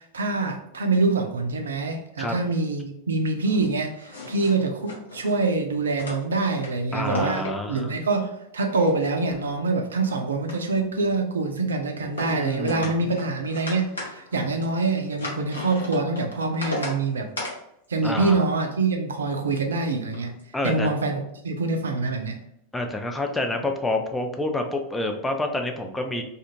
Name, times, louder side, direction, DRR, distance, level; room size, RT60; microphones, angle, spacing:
voice 1, 0.0-17.3 17.9-20.3 20.6-22.4, right 3 dB, 70° right, 4 dB, 0.4 m, -25 dB
sound 1, 3.4-5.4 5.9-6.7 7.0-7.9 8.4-10.1 10.4-11.1 12.0-12.3 12.6-16.9 17.4-17.6 19.3-19.5 20.1-20.4, left 2 dB, 75° left, 0.9 m, -36 dB
voice 2, 6.9-8.0 12.3-12.9 18.0-18.4 20.5-20.9 22.7-26.2, left 2 dB, 10° left, 3 dB, 0.4 m, -28 dB
2.4 x 2.4 x 2.9 m, 0.76 s
figure-of-eight pair, 90°, 0 cm